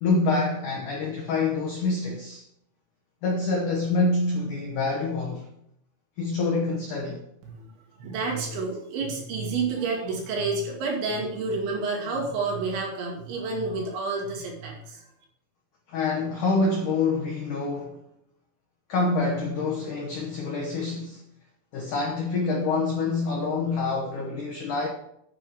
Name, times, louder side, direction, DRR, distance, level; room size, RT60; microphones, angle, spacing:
voice 1, 0.0-2.4 3.2-5.4 6.2-7.2 15.9-18.0 18.9-21.2 21.7-24.9, left 3 dB, 75° left, 1.8 m, -26 dB
voice 2, 8.0-15.0, right 3 dB, 70° right, 4.6 m, -29 dB
9.0 x 7.8 x 4.9 m
omnidirectional pair, 5.6 m